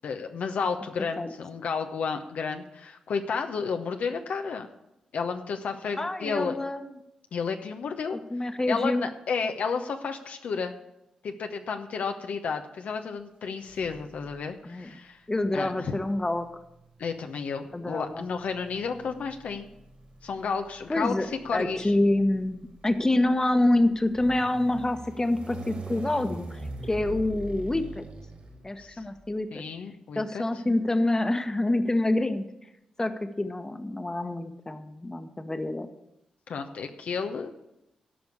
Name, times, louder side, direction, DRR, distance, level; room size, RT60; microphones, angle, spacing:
voice 1, 0.0-4.7 5.1-6.6 7.3-8.2 8.7-10.7 11.2-15.2 15.5-15.9 17.0-19.7 20.2-21.9 28.8-29.0 29.5-30.4 36.5-37.7, left 5 dB, 70° left, 5 dB, 0.9 m, -32 dB
voice 2, 6.0-6.9 8.3-9.1 14.6-14.9 15.3-16.5 17.7-18.2 20.9-28.0 28.6-29.6 30.2-32.5 33.0-35.9, left 1 dB, 20° left, 9 dB, 1.2 m, -27 dB
sound 1, 13.7-14.4 15.5-29.2, right 2 dB, 55° right, 3.5 m, -43 dB
13.0 x 5.2 x 8.3 m, 0.90 s
supercardioid pair, 50°, 3 cm